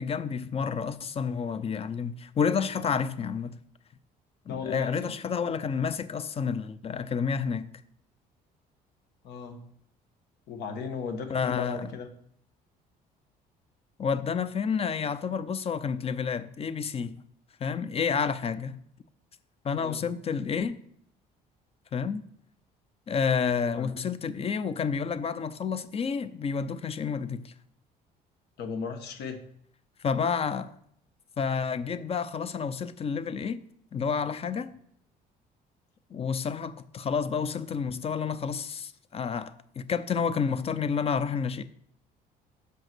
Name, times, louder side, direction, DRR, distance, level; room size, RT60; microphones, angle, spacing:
voice 1, 0.0-3.5 4.5-7.7 11.3-11.9 14.0-17.1 17.6-18.8 19.6-20.8 21.9-22.2 23.1-27.5 30.0-30.7 31.4-33.6 33.9-34.8 36.1-41.6, left 6 dB, 35° left, 0.6 m, -30 dB
voice 2, 4.5-5.1 9.2-9.6 10.5-12.1 19.7-20.0 23.7-24.0 28.6-29.4, left 5 dB, 75° left, 1.2 m, -36 dB
6.4 x 5.4 x 6.1 m
cardioid pair, 110°, 17 cm